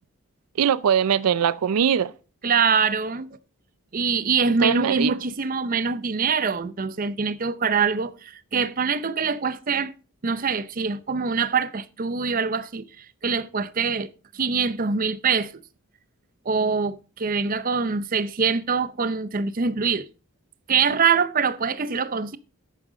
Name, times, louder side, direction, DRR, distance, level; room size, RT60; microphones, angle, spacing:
voice 1, 0.6-2.1 4.5-5.2, right 8 dB, 85° right, 0.4 m, -21 dB
voice 2, 2.4-3.3 3.9-9.9 10.2-14.1 14.3-15.5 16.5-20.1 20.7-22.4, right 5 dB, 40° right, 0.6 m, -24 dB
11.0 x 8.9 x 3.8 m
head